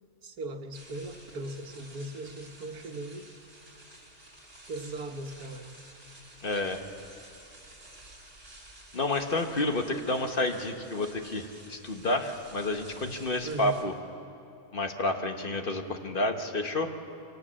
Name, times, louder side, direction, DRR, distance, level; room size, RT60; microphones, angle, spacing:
voice 1, 0.2-3.3 4.7-5.7 13.4-13.7, right 1 dB, 90° right, 5 dB, 1.8 m, -38 dB
sound 1, 0.7-13.8, right 1 dB, 50° right, 4.0 m, -52 dB
voice 2, 6.4-6.8 8.9-13.9 14.7-16.9, left 2 dB, 40° left, 5 dB, 1.3 m, -30 dB
25.0 x 18.0 x 7.5 m, 2.8 s
omnidirectional pair, 1.6 m